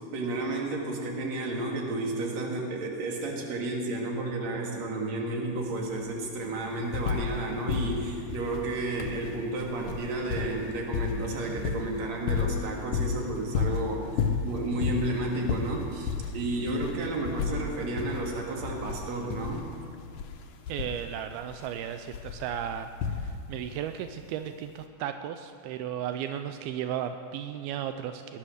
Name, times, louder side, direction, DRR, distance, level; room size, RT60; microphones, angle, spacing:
voice 1, 0.1-19.6, right 2 dB, 50° right, 0 dB, 2.8 m, -32 dB
sound 1, 5.6-5.7 6.0-7.4 7.7-23.6 24.7-24.8, left 6 dB, 70° left, 1.9 m, -33 dB
voice 2, 20.7-28.4, right 9 dB, 85° right, 8 dB, 2.5 m, -35 dB
18.0 x 11.0 x 6.4 m, 2.3 s
omnidirectional pair, 4.4 m